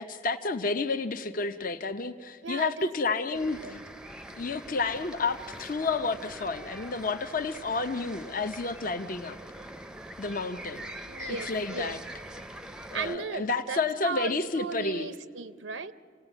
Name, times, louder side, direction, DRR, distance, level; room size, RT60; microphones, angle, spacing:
voice 1, 0.0-3.6 4.4-9.4 10.2-10.9 11.3-12.0 12.9-15.1, left 4 dB, 45° left, 8 dB, 0.7 m, -30 dB
voice 2, 2.4-3.3 3.6-3.8 11.1-12.0 12.9-15.9, right 5 dB, 85° right, 14 dB, 0.6 m, -36 dB
sound 1, 3.3-13.2, right 1 dB, 5° right, 0.6 m, -43 dB
28.5 x 17.5 x 9.0 m, 2.3 s
head